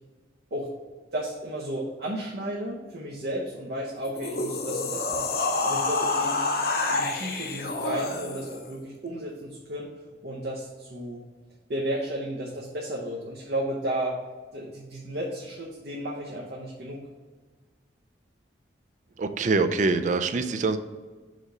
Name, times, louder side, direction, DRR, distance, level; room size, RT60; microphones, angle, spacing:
voice 1, 1.1-6.5 6.9-9.9 10.2-11.2 11.7-14.2 14.5-17.0, right 1 dB, 60° right, -3 dB, 0.9 m, -33 dB
sound 1, 4.0-8.6, left 3 dB, 55° left, 0.7 m, -28 dB
voice 2, 19.2-20.8, right 3 dB, 40° right, 9 dB, 0.4 m, -24 dB
5.1 x 3.8 x 5.4 m, 1.3 s
head